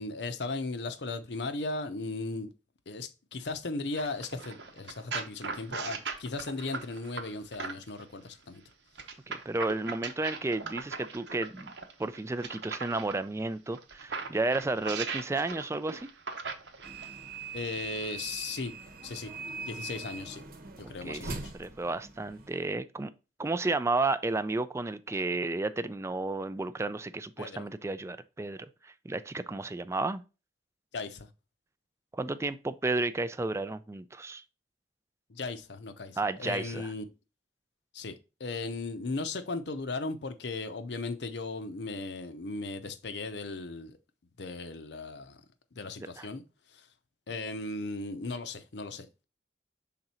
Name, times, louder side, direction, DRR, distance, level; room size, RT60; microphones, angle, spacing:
voice 1, 0.0-2.5 2.9-8.6 17.5-18.7 19.0-19.3 19.6-20.4 20.8-21.5 27.4-27.7 30.9-31.3 35.3-37.0 37.9-38.1 38.4-44.0 44.4-45.4 45.7-46.4 46.7-46.9 47.3-49.2, left 3 dB, 75° left, 0.7 m, -37 dB
sound 1, 4.0-8.0 9.0-13.2 13.7-17.1 17.9-18.1, right 5 dB, 85° right, 1.0 m, -39 dB
voice 2, 9.3-11.7 12.0-16.0 20.8-23.1 23.4-30.2 32.1-34.4 36.2-36.9 46.2-46.3, right 2 dB, 15° right, 0.4 m, -32 dB
sound 2, 16.8-22.7, right 4 dB, 55° right, 1.0 m, -42 dB
5.9 x 3.8 x 4.2 m
head